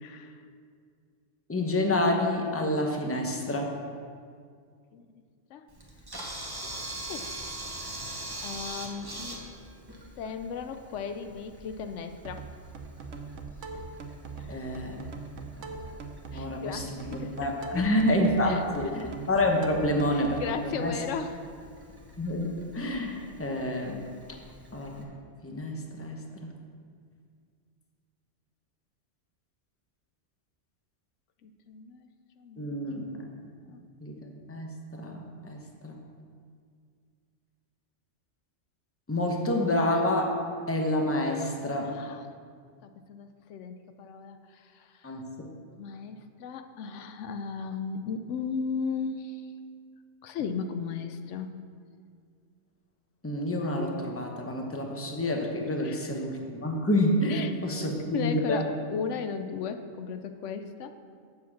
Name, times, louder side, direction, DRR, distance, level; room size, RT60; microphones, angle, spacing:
voice 1, 0.0-0.4 4.9-5.1 5.5-5.7 6.6-6.7 7.1-7.3 8.1-9.1 10.2-12.5 14.4-14.6 16.3-17.9 18.4-19.0 20.1-21.4 31.4-32.1 32.4-32.7 33.7-33.8 41.8-42.3 42.8-45.1 45.8-49.5 50.2-51.5 55.8-56.1 57.3-57.5 57.8-60.9, left 6 dB, 80° left, 8 dB, 0.9 m, -36 dB
voice 2, 1.5-3.7 14.5-15.0 15.6-15.8 16.3-21.0 22.2-22.5 22.7-24.0 24.7-25.0 25.4-26.5 32.6-33.2 34.0-36.0 39.1-40.4 40.7-42.0 45.0-45.5 53.2-58.6, left 1 dB, 15° left, 1 dB, 0.9 m, -28 dB
Camera, 5.7-25.0, right 1 dB, 20° right, 1.1 m, -44 dB
sound 1, 12.2-20.5, right 4 dB, 85° right, 1.2 m, -41 dB
7.4 x 6.3 x 7.2 m, 2.1 s
omnidirectional pair, 1.2 m